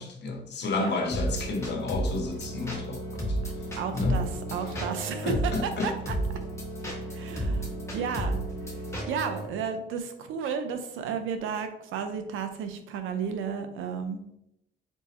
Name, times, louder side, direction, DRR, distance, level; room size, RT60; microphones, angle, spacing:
voice 1, 0.0-3.4 3.9-4.2 4.7-4.9 5.2-5.9, left 3 dB, 60° left, 3 dB, 1.0 m, -31 dB
sound 1, 1.1-9.5, right 1 dB, 15° left, 1.7 m, -32 dB
voice 2, 3.4-6.1 7.1-8.4 9.1-14.2, right 6 dB, 90° right, 7 dB, 0.6 m, -33 dB
4.5 x 4.0 x 2.9 m, 0.81 s
cardioid pair, 90°, 20 cm